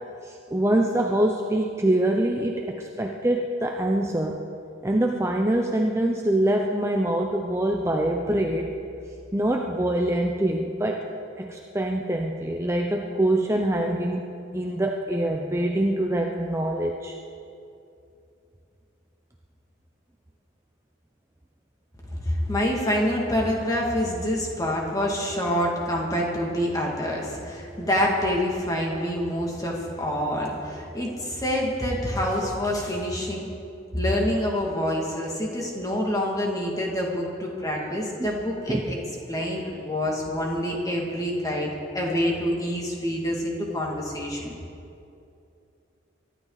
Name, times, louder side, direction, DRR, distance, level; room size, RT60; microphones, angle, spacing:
voice 1, 0.2-4.4 4.8-8.7 9.3-11.1 11.4-17.2 38.2-38.3 38.7-38.8, right 1 dB, 15° right, 1 dB, 0.6 m, -24 dB
voice 2, 22.1-33.5 33.9-39.0 39.3-41.7 41.9-44.5, equal, 20° left, -2 dB, 2.2 m, -26 dB
23.0 x 12.0 x 4.1 m, 2.6 s
head